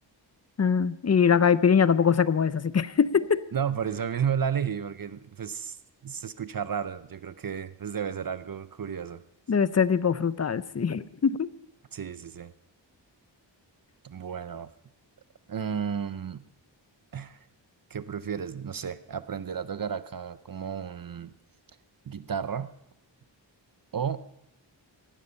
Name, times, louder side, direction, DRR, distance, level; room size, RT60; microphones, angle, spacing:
voice 1, 0.6-3.4 9.5-11.5, left 6 dB, 35° left, 16 dB, 0.6 m, -23 dB
voice 2, 3.5-5.8 6.0-9.2 11.9-12.5 14.0-14.7 15.5-16.4 17.1-17.4 17.9-21.3 22.0-22.7 23.9-24.2, right 7 dB, 50° right, 13 dB, 0.7 m, -32 dB
18.0 x 12.0 x 5.6 m, 0.76 s
wide cardioid pair, 115°, 45 cm